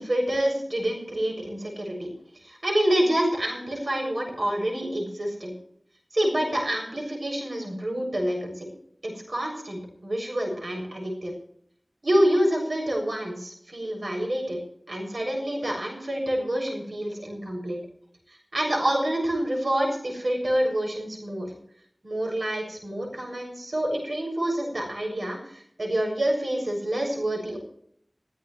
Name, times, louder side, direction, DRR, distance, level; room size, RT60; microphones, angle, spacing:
voice 1, 0.0-2.1 2.4-5.5 6.1-8.7 9.0-11.3 12.0-14.6 14.9-17.8 18.5-21.5 22.0-27.6, right 1 dB, 90° right, 1 dB, 7.2 m, -27 dB
22.0 x 16.0 x 3.3 m, 0.66 s
wide cardioid pair, 40°, 0 cm